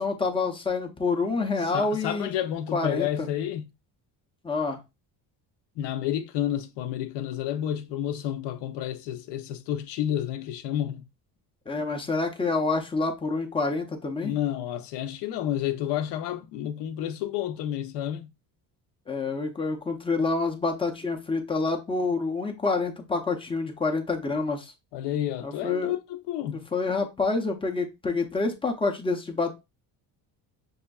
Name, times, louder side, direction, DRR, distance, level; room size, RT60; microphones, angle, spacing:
voice 1, 0.0-2.3 2.7-3.3 4.4-4.8 11.7-14.3 19.1-24.7 25.4-25.9 26.7-29.5, left 3 dB, 15° left, 0.5 m, -27 dB
voice 2, 1.6-3.7 5.8-11.1 14.2-18.3 24.9-26.6, left 11 dB, 80° left, 0.7 m, -30 dB
6.2 x 2.5 x 2.3 m
cardioid pair, 150°, 41 cm